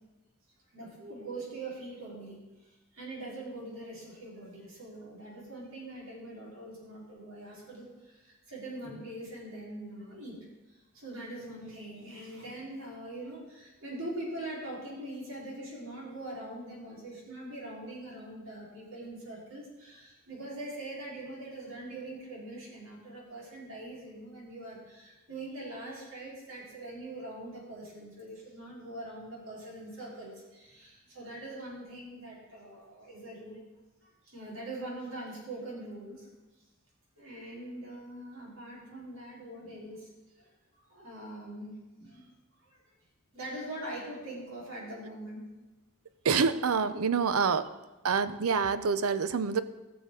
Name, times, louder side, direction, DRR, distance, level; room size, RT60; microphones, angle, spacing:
voice 1, 0.7-10.4 10.7-33.6 34.2-36.3 37.2-40.1 40.4-40.5 40.9-42.3 42.6-43.0 43.3-45.5, right 1 dB, 70° right, -5 dB, 3.9 m, -43 dB
voice 2, 46.2-47.7 48.0-49.6, right 5 dB, 85° right, 13 dB, 0.5 m, -27 dB
16.5 x 6.9 x 3.7 m, 1.1 s
head